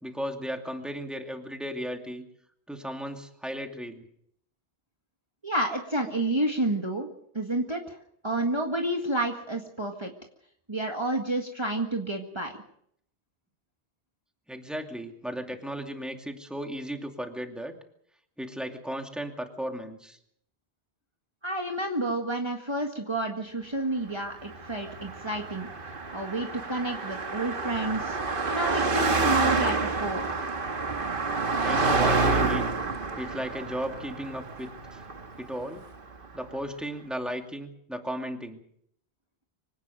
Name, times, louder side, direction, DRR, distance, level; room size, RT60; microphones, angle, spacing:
voice 1, 0.0-2.2 2.7-4.1 14.5-17.7 18.4-20.2 31.6-32.7 33.2-35.0 35.4-35.8 36.3-38.6, equal, ahead, 3 dB, 2.5 m, -35 dB
voice 2, 5.4-7.1 7.3-8.0 8.2-10.1 10.7-12.5 21.4-28.2 28.5-30.3, right 1 dB, 25° right, 1 dB, 1.9 m, -30 dB
Car passing by, 24.4-35.9, right 4 dB, 55° right, 1.6 m, -28 dB
25.0 x 18.0 x 6.6 m, 0.69 s
omnidirectional pair, 1.1 m